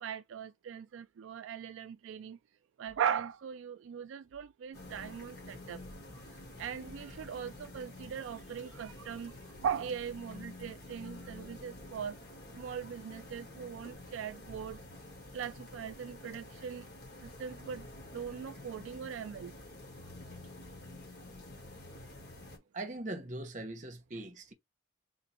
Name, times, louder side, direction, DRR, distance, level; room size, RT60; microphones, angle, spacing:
voice 1, 0.0-2.4 2.8-5.8 6.6-9.3 9.6-12.1 12.6-14.8 15.3-16.8 17.4-17.8 18.1-19.5, right 8 dB, 75° right, 0.3 m, -39 dB
sound 1, 4.7-22.6, left 2 dB, 50° left, 2.0 m, -49 dB
voice 2, 22.7-24.5, right 2 dB, 40° right, 0.9 m, -41 dB
3.8 x 2.5 x 4.2 m
head